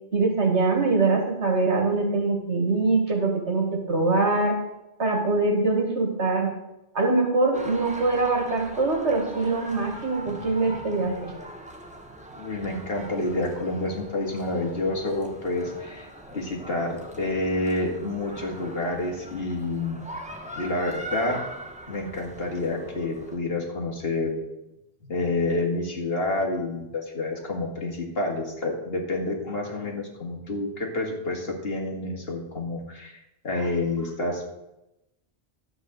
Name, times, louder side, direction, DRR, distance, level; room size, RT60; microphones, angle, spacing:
voice 1, 0.1-4.6 5.0-6.6 6.9-11.3, right 3 dB, 80° right, 2 dB, 2.3 m, -23 dB
sound 1, 7.5-23.4, right 1 dB, 5° right, 1.3 m, -41 dB
voice 2, 12.4-20.0 20.6-21.4 21.9-24.3 25.1-34.5, left 2 dB, 60° left, 0 dB, 2.4 m, -29 dB
11.5 x 5.3 x 7.9 m, 0.93 s
omnidirectional pair, 1.2 m